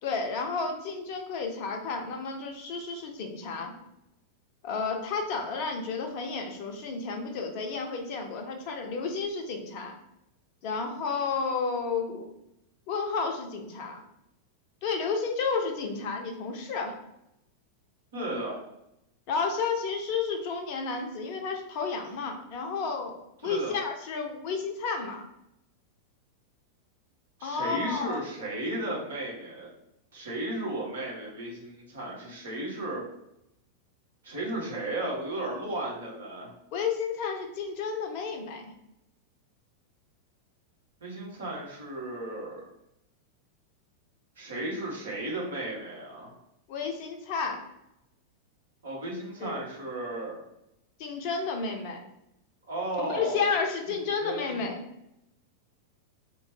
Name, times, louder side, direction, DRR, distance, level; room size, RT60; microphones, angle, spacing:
voice 1, 0.0-3.7 4.6-10.0 10.6-12.3 12.9-14.0 14.8-17.0 19.3-25.2 27.4-28.2 36.7-38.6 46.7-47.6 49.4-49.6 51.0-52.0 53.0-54.9, left 5 dB, 45° left, 4 dB, 0.5 m, -31 dB
voice 2, 18.1-18.6 23.4-23.7 27.4-29.7 30.1-33.0 34.2-36.5 41.0-42.6 44.4-46.4 48.8-50.4 52.7-53.5 53.9-54.0 54.2-54.6, right 1 dB, 65° right, -3 dB, 1.1 m, -34 dB
2.9 x 2.1 x 3.1 m, 0.82 s
figure-of-eight pair, 90°, 0 cm